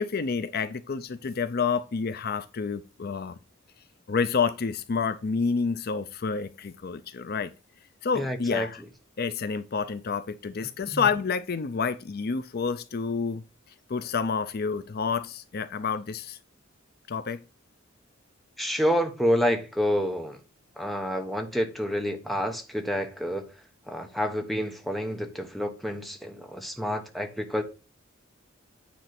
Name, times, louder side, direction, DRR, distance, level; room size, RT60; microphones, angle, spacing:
voice 1, 0.0-3.4 4.1-7.5 8.0-8.8 9.2-13.4 13.9-16.4 17.1-17.4, left 5 dB, 50° left, 0.5 m, -29 dB
voice 2, 8.1-8.7 10.9-11.0 18.6-20.4 20.8-23.5 23.9-27.6, equal, ahead, 1.1 m, -28 dB
9.4 x 3.3 x 5.9 m
head